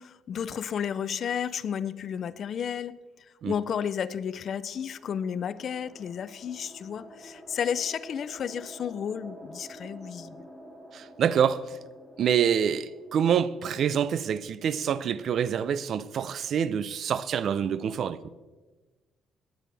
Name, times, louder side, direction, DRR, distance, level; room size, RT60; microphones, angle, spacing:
voice 1, 0.0-3.0 3.4-10.5, left 8 dB, 55° left, 0.5 m, -32 dB
sound 1, 4.3-14.7, equal, 10° right, 4.3 m, -50 dB
voice 2, 10.9-11.7 12.2-18.2, right 8 dB, 60° right, 0.5 m, -26 dB
19.0 x 9.2 x 3.4 m
cardioid pair, 115°, 0 cm